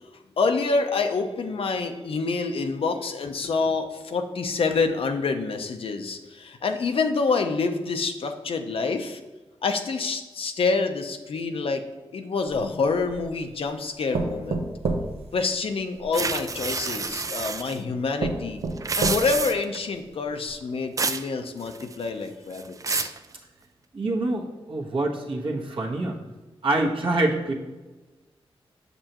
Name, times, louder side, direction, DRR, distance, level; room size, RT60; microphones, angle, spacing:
voice 1, 0.4-9.2 9.6-11.9 12.1-14.6 15.3-18.6 19.0-23.1, left 4 dB, 65° left, 6 dB, 0.6 m, -27 dB
sound 1, 12.5-13.4 14.1-16.1 17.1-17.2 17.7-17.8 18.2-19.5 20.0-20.1 20.5-20.6, right 3 dB, 80° right, 0.8 m, -29 dB
sound 2, 16.1-17.8 18.7-19.8 21.0-21.3 21.6-22.1 22.5-23.2, right 4 dB, 35° right, 0.4 m, -29 dB
voice 2, 23.9-26.2 26.6-27.5, right 2 dB, 60° right, -2 dB, 1.3 m, -26 dB
6.8 x 6.7 x 2.9 m, 1.2 s
cardioid pair, 80°, 10 cm